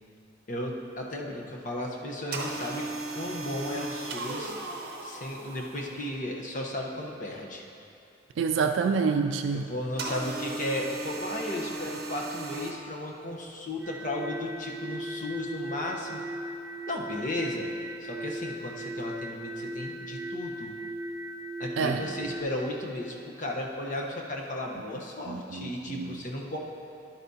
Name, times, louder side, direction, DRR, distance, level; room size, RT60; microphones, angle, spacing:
voice 1, 0.5-2.9 3.1-4.6 5.0-7.6 9.5-16.2 16.9-17.7 18.0-20.8 21.6-26.6, left 1 dB, 45° left, -1 dB, 0.9 m, -35 dB
sound 1, 2.3-6.3 10.0-12.7, right 2 dB, 55° right, 0.7 m, -37 dB
voice 2, 8.4-9.7 21.8-22.0 25.3-26.1, right 5 dB, 75° right, 6 dB, 0.3 m, -27 dB
sound 2, 13.8-22.4, right 1 dB, 10° right, 1.1 m, -38 dB
10.5 x 8.1 x 2.7 m, 2.7 s
head